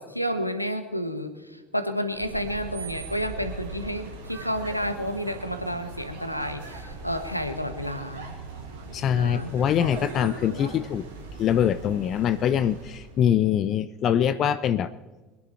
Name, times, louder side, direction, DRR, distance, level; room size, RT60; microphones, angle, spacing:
voice 1, 0.0-8.3 9.1-9.5, equal, 90° left, 9 dB, 1.0 m, -30 dB
sound 1, 2.1-13.2, right 3 dB, 65° right, 3.3 m, -40 dB
voice 2, 8.9-11.1 11.4-14.9, left 9 dB, 40° left, 17 dB, 0.5 m, -23 dB
23.0 x 10.5 x 4.3 m, 1.2 s
figure-of-eight pair, 65°, 0 cm